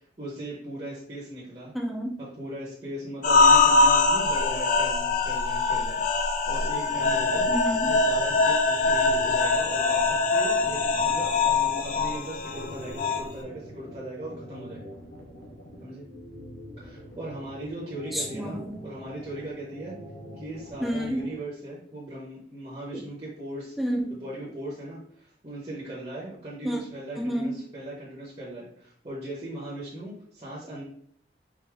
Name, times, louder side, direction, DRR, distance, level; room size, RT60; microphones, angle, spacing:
voice 1, 0.0-1.7 2.2-7.5 7.8-14.9 15.8-16.1 16.8-19.9 20.4-23.8 24.1-30.8, right 1 dB, 30° right, -7 dB, 1.1 m, -38 dB
voice 2, 1.7-2.2 7.5-7.9 18.1-18.8 20.8-21.3 22.9-23.1 23.8-24.2 26.6-26.8 27.2-27.5, equal, ahead, -1 dB, 0.6 m, -29 dB
sound 1, 3.2-13.2, left 3 dB, 45° left, 0.4 m, -23 dB
sound 2, 6.6-21.3, equal, 70° left, 1.2 m, -45 dB
4.9 x 2.7 x 3.5 m, 0.63 s
head